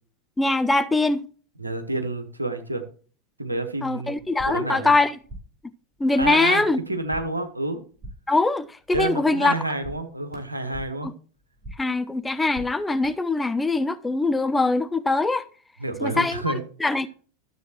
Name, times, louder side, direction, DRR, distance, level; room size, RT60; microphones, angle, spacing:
voice 1, 0.4-1.3 3.8-5.2 6.0-6.8 8.3-9.5 11.0-11.1 11.8-15.4 16.0-16.5 16.8-17.1, left 3 dB, 10° left, 0.5 m, -22 dB
voice 2, 1.6-2.8 3.4-4.2 4.4-4.9 6.1-7.8 8.9-11.1 15.8-16.6, right 2 dB, 85° right, 1.2 m, -29 dB
sound 1, 4.2-4.7 5.0-5.6 5.9-6.6 6.8-7.4 7.7-8.4 8.7-9.3 9.5-11.1 11.4-12.0 12.3-13.1, right 1 dB, 10° right, 4.3 m, -43 dB
12.5 x 7.4 x 2.9 m
figure-of-eight pair, 85°, 0 cm